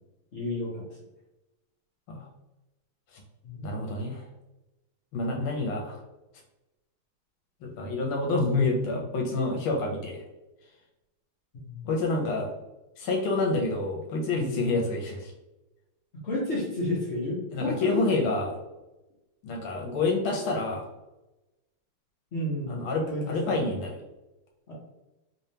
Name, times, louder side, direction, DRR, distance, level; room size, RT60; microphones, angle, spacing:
voice 1, 0.3-1.0 3.4-3.7 11.5-11.8 14.4-14.7 16.2-18.0 22.3-23.7 24.7-24.8, left 1 dB, 50° left, -6 dB, 0.7 m, -32 dB
voice 2, 3.6-4.2 5.1-6.0 7.6-10.2 11.8-12.5 13.0-15.3 17.5-18.6 19.4-20.9 22.7-24.0, left 3 dB, 75° left, 0 dB, 1.5 m, -28 dB
3.6 x 3.2 x 2.8 m, 1.0 s
omnidirectional pair, 2.4 m